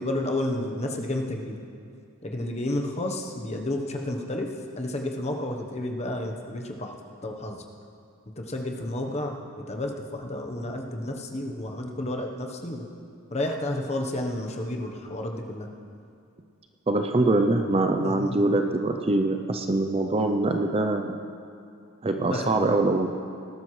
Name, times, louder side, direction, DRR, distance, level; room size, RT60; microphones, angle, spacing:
voice 1, 0.0-1.6 2.2-4.5 4.8-6.9 7.2-7.6 8.4-12.9 13.3-15.7 18.0-18.6 22.3-22.7, left 1 dB, 30° left, 2 dB, 1.0 m, -31 dB
voice 2, 16.9-21.2 22.0-23.1, right 2 dB, 25° right, 5 dB, 0.5 m, -23 dB
19.0 x 12.5 x 3.2 m, 2.5 s
head